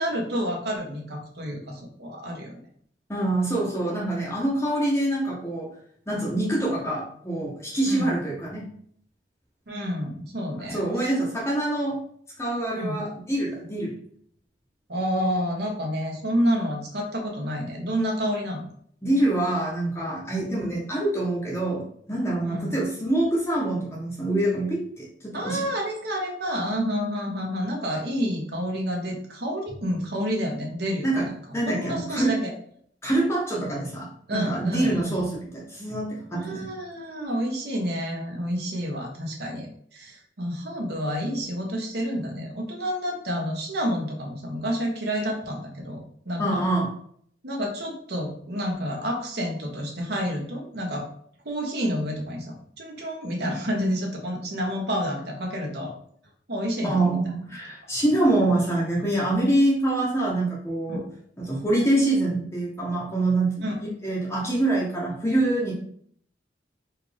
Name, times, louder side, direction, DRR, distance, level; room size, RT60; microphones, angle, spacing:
voice 1, 0.0-2.6 7.9-8.2 9.7-11.1 12.7-13.0 14.9-18.7 22.4-22.8 25.3-31.3 31.6-32.5 34.3-35.2 36.3-39.7 39.9-46.6 47.4-51.1 51.4-55.9 56.5-57.2 60.9-61.0 63.6-63.8, equal, 60° right, -1 dB, 1.1 m, -29 dB
voice 2, 3.1-5.7 6.1-8.7 10.7-12.0 12.4-13.9 19.0-25.6 31.0-31.3 31.5-32.3 33.0-36.7 46.4-46.9 56.8-61.0 61.4-63.7 64.0-65.7, right 1 dB, 15° left, -5 dB, 0.8 m, -25 dB
4.4 x 2.5 x 3.3 m, 0.62 s
head